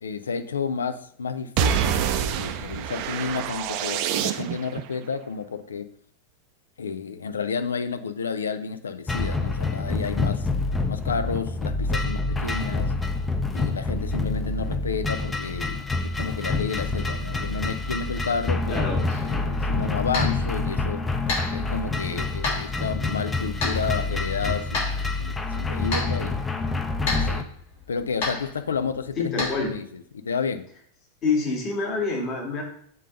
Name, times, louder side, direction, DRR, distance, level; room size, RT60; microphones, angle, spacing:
voice 1, 0.0-5.9 6.8-10.5 10.9-12.9 13.5-15.8 16.1-18.8 19.2-21.0 21.5-26.4 27.1-27.5 27.9-30.7, left 5 dB, 70° left, 10 dB, 0.6 m, -31 dB
sound 1, 1.6-4.8, right 9 dB, 45° right, 0.5 m, -26 dB
sound 2, 9.1-27.4, left 3 dB, 10° left, 0.7 m, -27 dB
voice 2, 18.7-19.0 29.2-29.7 31.2-32.6, left 4 dB, 35° left, -1 dB, 2.2 m, -26 dB
sound 3, 19.1-29.8, left 3 dB, 55° left, 3.1 m, -34 dB
7.4 x 3.9 x 5.3 m, 0.63 s
figure-of-eight pair, 90°, 0 cm